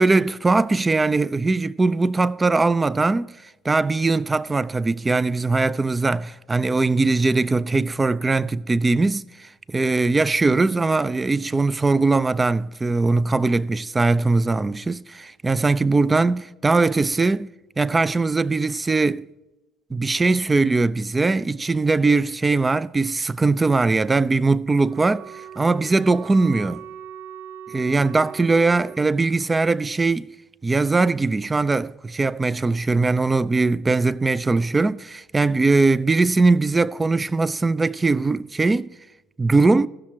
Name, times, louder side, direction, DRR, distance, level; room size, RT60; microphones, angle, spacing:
voice 1, 0.0-17.5 17.8-19.3 19.9-26.8 27.7-30.3 30.6-38.9 39.4-39.9, right 3 dB, 20° right, 0.3 m, -20 dB
Wind instrument woodwind instrument, 24.7-29.1, right 8 dB, 85° right, 0.7 m, -40 dB
16.0 x 6.4 x 4.3 m
supercardioid pair, 75°, 0 cm